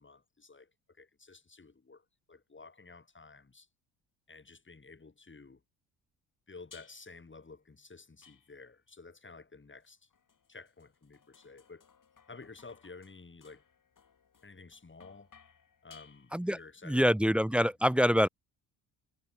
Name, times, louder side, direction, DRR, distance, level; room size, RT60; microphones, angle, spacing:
voice 1, 0.0-3.7 4.3-5.6 6.5-10.1 10.5-11.9 12.3-13.6 14.4-15.3 15.8-17.7, left 4 dB, 25° left, 7.3 m, -52 dB
sound 1, 6.7-7.3 8.2-8.9 9.8-16.7, left 6 dB, 40° left, 7.9 m, -61 dB
voice 2, 16.8-18.3, equal, ahead, 0.7 m, -25 dB
hypercardioid pair, 55°, 49 cm